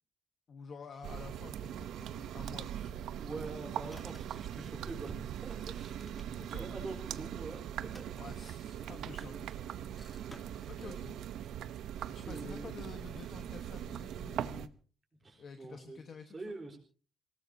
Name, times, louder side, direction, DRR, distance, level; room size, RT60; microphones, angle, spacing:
voice 1, 0.5-3.1 6.4-6.7 8.1-9.9 10.7-11.1 12.1-14.8 15.4-16.5, left 5 dB, 40° left, 6 dB, 1.3 m, -50 dB
sound 1, 1.0-14.7, right 10 dB, 70° right, 0.8 m, -41 dB
voice 2, 3.2-8.1 8.9-9.5 10.5-11.5 12.2-12.7 15.2-16.0 16.3-16.8, right 3 dB, 20° right, 1 dB, 4.2 m, -46 dB
sound 2, 3.9-4.5 5.8-6.6 7.8-8.7 10.0-11.0, left 1 dB, 10° left, 2.1 m, -58 dB
sound 3, 6.5-7.5, right 11 dB, 90° right, 3.5 m, -63 dB
27.5 x 18.0 x 2.8 m, 0.38 s
cardioid pair, 170°, 0 cm